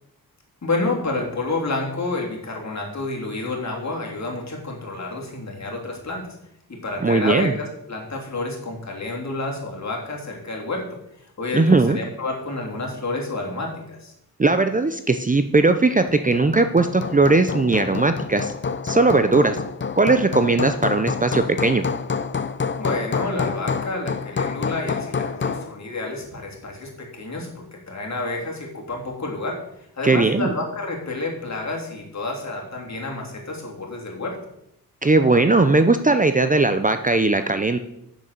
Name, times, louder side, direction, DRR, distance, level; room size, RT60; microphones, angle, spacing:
voice 1, 0.6-6.4 6.7-10.9 11.4-14.1 22.8-29.6 29.9-34.4, left 2 dB, 45° left, -1 dB, 3.3 m, -29 dB
voice 2, 7.0-7.5 11.5-12.0 14.4-18.5 18.8-19.6 20.0-21.8 30.0-30.5 35.0-37.8, right 3 dB, 20° right, 9 dB, 0.6 m, -18 dB
Hammer, 16.1-25.7, left 5 dB, 30° left, 0.6 m, -28 dB
8.2 x 7.1 x 6.7 m, 0.79 s
cardioid pair, 80°, 36 cm